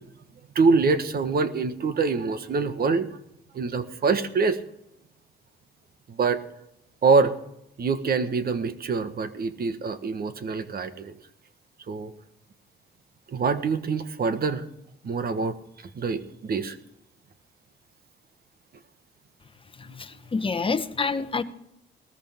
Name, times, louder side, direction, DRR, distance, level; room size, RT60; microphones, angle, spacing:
voice 1, 0.5-3.1 3.5-4.6 6.1-6.4 7.0-7.3 7.8-11.1 11.9-12.1 13.3-14.6 15.0-15.6 15.9-16.8, right 4 dB, 50° right, 10 dB, 1.4 m, -25 dB
voice 2, 19.8-21.4, left 4 dB, 25° left, 11 dB, 1.1 m, -28 dB
18.5 x 14.0 x 3.7 m, 0.80 s
cardioid pair, 90°, 20 cm